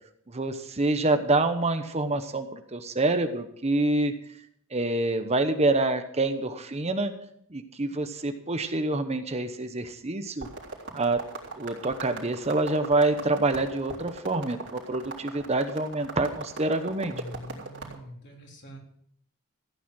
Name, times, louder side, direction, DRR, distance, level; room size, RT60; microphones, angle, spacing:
voice 1, 0.3-4.1 4.7-7.1 7.5-10.5 10.9-11.2 11.6-17.1, right 2 dB, 30° right, 8 dB, 1.0 m, -26 dB
sound 1, 10.4-17.9, right 3 dB, 60° right, 3.7 m, -40 dB
voice 2, 17.0-18.8, equal, 55° left, 0 dB, 3.6 m, -44 dB
15.0 x 9.4 x 6.2 m, 0.68 s
head